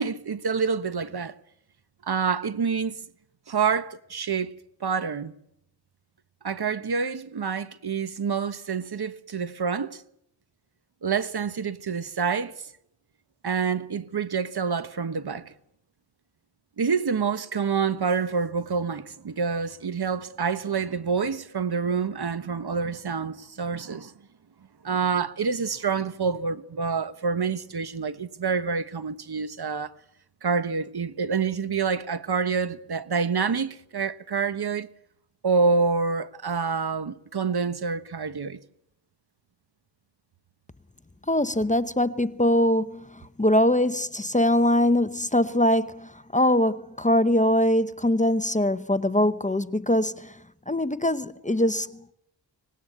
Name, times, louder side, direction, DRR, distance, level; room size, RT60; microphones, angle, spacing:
voice 1, 0.0-1.3 2.0-3.0 3.5-4.5 4.8-5.3 6.4-10.0 11.0-12.5 13.4-15.5 16.8-24.1 24.8-29.9 30.4-34.9 35.4-38.6, right 5 dB, 60° right, 1.2 m, -27 dB
voice 2, 41.3-50.4 50.7-52.1, left 1 dB, 15° left, 0.9 m, -23 dB
25.0 x 19.5 x 8.0 m
wide cardioid pair, 80°, 44 cm